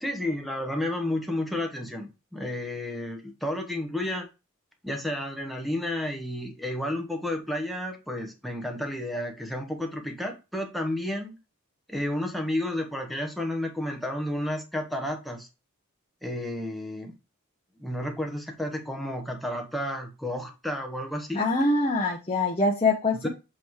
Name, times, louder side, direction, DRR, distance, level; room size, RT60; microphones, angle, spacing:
voice 1, 0.0-4.3 4.8-11.4 11.9-15.5 16.2-17.1 17.8-21.4 23.1-23.3, left 1 dB, ahead, 2 dB, 1.0 m, -31 dB
voice 2, 21.4-23.3, left 2 dB, 25° left, 0 dB, 0.8 m, -24 dB
7.7 x 3.0 x 4.6 m, 0.28 s
head